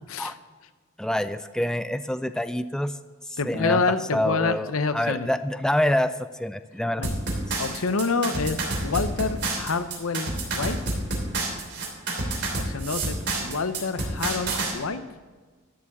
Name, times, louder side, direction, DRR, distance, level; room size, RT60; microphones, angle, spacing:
voice 1, 1.0-2.9 3.3-3.8 4.1-7.0, left 1 dB, 5° left, 11 dB, 0.3 m, -26 dB
voice 2, 3.4-5.3 7.0-7.2 7.6-10.8 12.6-15.0, left 4 dB, 90° left, 11 dB, 0.8 m, -27 dB
sound 1, 7.0-14.7, right 2 dB, 55° right, 3.0 m, -29 dB
12.5 x 7.1 x 7.4 m, 1.4 s
head